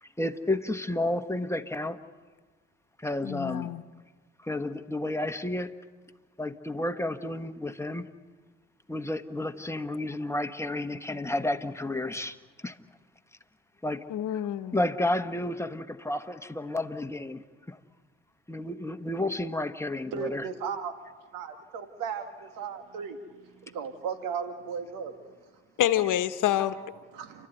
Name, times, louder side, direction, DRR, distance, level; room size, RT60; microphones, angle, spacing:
voice 1, 0.0-2.0 3.0-3.7 4.4-5.7 6.4-8.1 8.9-12.4 12.6-12.8 13.8-14.1 14.7-17.4 17.7-17.8 18.5-20.5, left 1 dB, 10° left, 7 dB, 1.4 m, -31 dB
voice 2, 3.2-3.8 14.1-14.8 25.8-26.8, left 12 dB, 70° left, 11 dB, 1.1 m, -27 dB
voice 3, 20.1-21.0 21.3-23.2 23.4-25.1 26.8-27.5, right 6 dB, 85° right, 8 dB, 2.0 m, -36 dB
30.0 x 12.5 x 9.3 m, 1.4 s
supercardioid pair, 60°, 32 cm